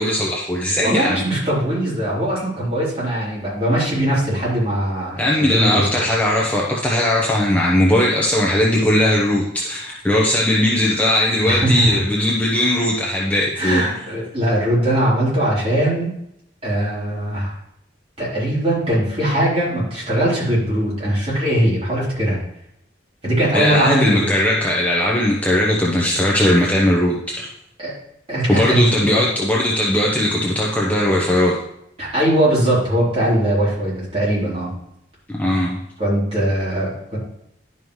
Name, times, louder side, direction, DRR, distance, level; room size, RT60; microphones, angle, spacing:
voice 1, 0.0-1.2 5.2-13.8 23.5-27.5 28.5-31.6 35.3-35.8, left 1 dB, 10° left, -4 dB, 0.8 m, -18 dB
voice 2, 0.8-5.9 11.4-12.0 13.6-16.1 16.6-17.5 18.2-22.4 23.2-24.3 27.8-27.9 28.3-29.1 32.0-34.7 36.0-37.2, right 1 dB, 30° right, -7 dB, 3.4 m, -20 dB
11.0 x 5.4 x 3.1 m, 0.77 s
head